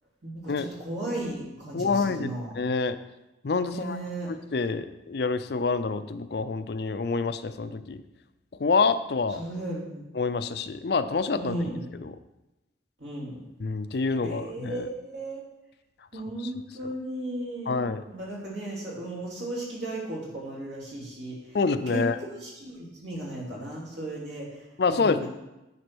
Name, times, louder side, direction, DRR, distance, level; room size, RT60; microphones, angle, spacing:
voice 1, 0.2-2.5 3.6-4.3 9.4-10.0 11.4-11.8 13.0-13.4 14.2-15.4 16.1-21.6 21.9-22.0 22.4-25.3, right 1 dB, 75° right, -5 dB, 3.2 m, -35 dB
voice 2, 1.7-2.3 2.6-3.0 3.4-4.0 4.3-8.0 8.6-9.4 10.1-11.5 12.0-12.2 13.6-14.9 17.7-18.0 21.5-22.2 24.8-25.3, left 4 dB, 60° left, 11 dB, 0.5 m, -27 dB
9.7 x 4.4 x 6.1 m, 0.96 s
head